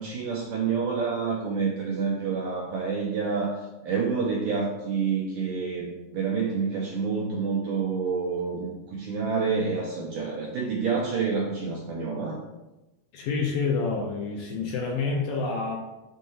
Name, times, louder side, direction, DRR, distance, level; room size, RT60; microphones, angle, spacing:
voice 1, 0.0-12.4, right 5 dB, 85° right, -2 dB, 1.8 m, -28 dB
voice 2, 13.1-15.8, left 4 dB, 75° left, 0 dB, 2.2 m, -28 dB
6.4 x 2.8 x 5.4 m, 1.0 s
omnidirectional pair, 4.6 m